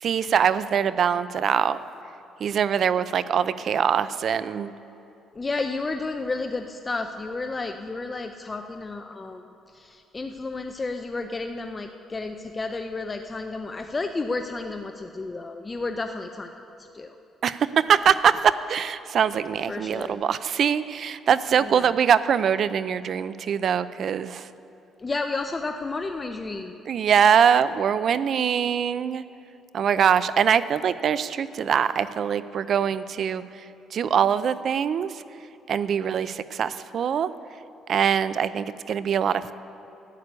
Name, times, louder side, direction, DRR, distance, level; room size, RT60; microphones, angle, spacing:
voice 1, 0.0-1.8 2.4-4.7 17.4-24.5 26.9-29.2 29.7-33.4 33.9-35.1 35.7-37.3 37.9-39.5, right 8 dB, 55° right, 15 dB, 0.5 m, -23 dB
voice 2, 5.3-16.5 16.9-17.2 19.7-20.2 21.6-22.0 25.0-26.8, left 3 dB, 25° left, 6 dB, 0.6 m, -32 dB
11.5 x 8.4 x 9.5 m, 2.7 s
cardioid pair, 100°, 0 cm